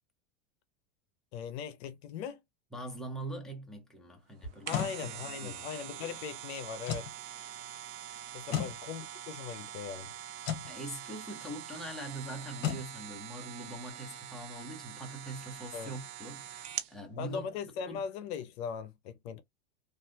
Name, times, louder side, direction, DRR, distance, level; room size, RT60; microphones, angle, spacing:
voice 1, 1.3-2.4 4.7-7.1 8.3-10.1 15.7-15.9 17.2-19.4, left 7 dB, 65° left, 0.8 m, -39 dB
voice 2, 2.7-5.7 8.4-8.7 10.7-17.4 17.9-18.0, right 1 dB, ahead, 0.9 m, -43 dB
sound 1, 4.4-5.0 6.8-7.1 8.5-8.8 10.4-10.7 12.6-12.9, left 9 dB, 40° left, 1.4 m, -33 dB
sound 2, 4.4-17.0 17.4-17.5, right 11 dB, 70° right, 0.8 m, -44 dB
3.2 x 2.5 x 2.8 m
supercardioid pair, 135°, 35 cm